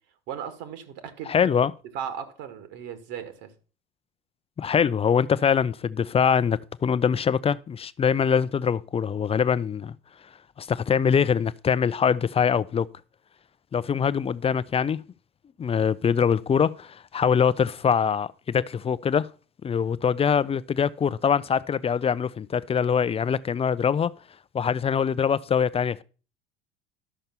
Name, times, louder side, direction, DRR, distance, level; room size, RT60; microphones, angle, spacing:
voice 1, 0.3-1.3 1.9-3.5, right 8 dB, 55° right, 2.0 m, -36 dB
voice 2, 1.3-1.7 4.6-9.9 10.6-12.9 13.7-15.0 15.6-19.3 19.6-24.1 24.5-26.0, left 7 dB, 20° left, 0.5 m, -23 dB
12.5 x 6.6 x 6.0 m
figure-of-eight pair, 70°, 30 cm